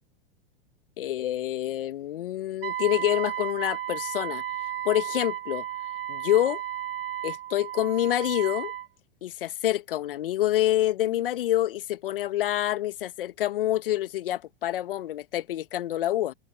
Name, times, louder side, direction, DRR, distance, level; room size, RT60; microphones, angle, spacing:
voice 1, 1.0-4.4 4.8-5.6 6.1-6.6 7.2-8.7 9.2-16.3, left 13 dB, 65° left, 1.8 m, -27 dB
Wind instrument woodwind instrument, 2.6-8.9, right 11 dB, 70° right, 1.5 m, -33 dB
figure-of-eight pair, 95°, 30 cm